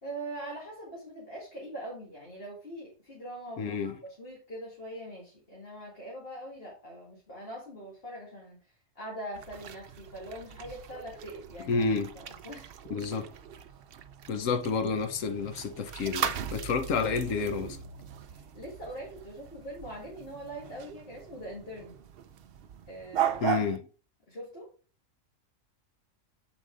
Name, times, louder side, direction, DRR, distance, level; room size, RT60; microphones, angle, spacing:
voice 1, 0.0-11.9 12.1-13.3 18.3-22.0 22.9-23.5 24.3-24.7, right 1 dB, 50° left, 2.3 m, -43 dB
voice 2, 3.6-4.0 11.7-12.1 12.9-13.3 14.3-17.8 23.4-23.9, left 5 dB, 90° left, 1.2 m, -30 dB
sound 1, 9.3-23.8, right 9 dB, 60° right, 0.7 m, -38 dB
7.4 x 4.9 x 3.8 m
omnidirectional pair, 1.3 m